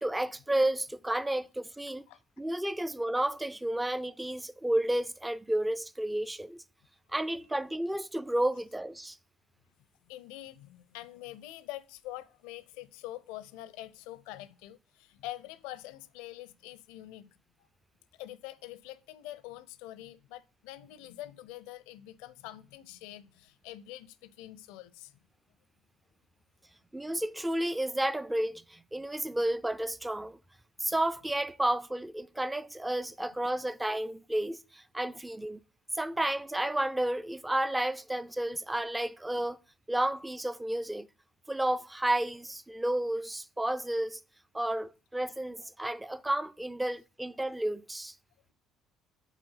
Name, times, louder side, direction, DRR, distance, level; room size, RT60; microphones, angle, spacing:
voice 1, 0.0-2.0 2.4-6.6 7.1-9.2 26.9-30.4 30.8-35.6 35.9-39.6 39.9-41.1 41.5-44.2 44.5-48.1, right 1 dB, 10° right, 0.5 m, -31 dB
voice 2, 10.1-17.3 18.2-25.2 33.2-33.3, left 15 dB, 75° left, 0.6 m, -45 dB
8.1 x 4.1 x 5.6 m
hypercardioid pair, 65°, 0 cm